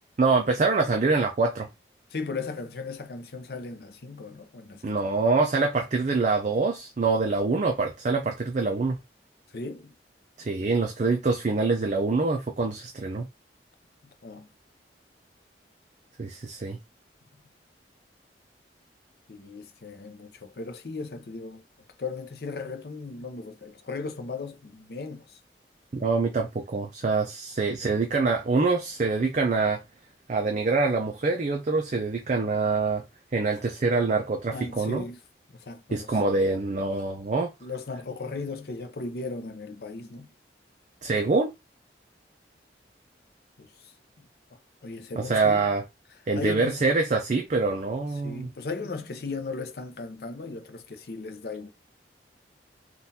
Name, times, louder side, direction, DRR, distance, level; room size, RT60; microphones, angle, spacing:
voice 1, 0.2-1.7 4.8-9.0 10.4-13.2 16.2-16.8 25.9-29.8 30.3-33.0 33.3-35.1 35.9-37.5 41.0-41.5 45.2-45.8 46.3-48.5, right 3 dB, 40° right, 0.4 m, -25 dB
voice 2, 2.1-5.0 9.5-9.9 14.2-14.5 19.3-21.6 22.0-25.4 34.5-35.2 35.5-36.2 37.6-40.3 43.6-43.9 44.2-44.3 44.8-45.7 46.3-46.8 48.2-51.7, left 3 dB, 60° left, 0.6 m, -37 dB
3.7 x 2.4 x 2.7 m
head